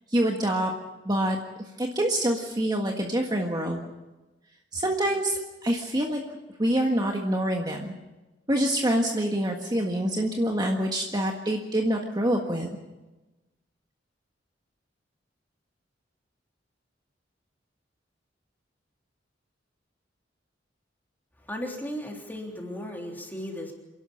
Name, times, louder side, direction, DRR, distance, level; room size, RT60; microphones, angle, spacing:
voice 1, 0.1-0.7 1.0-1.4 1.8-3.8 4.7-6.2 6.6-7.9 8.5-12.8, right 1 dB, 20° right, 1 dB, 1.6 m, -26 dB
voice 2, 21.4-23.7, equal, 10° left, 0 dB, 3.5 m, -36 dB
28.0 x 12.0 x 8.7 m, 1.1 s
head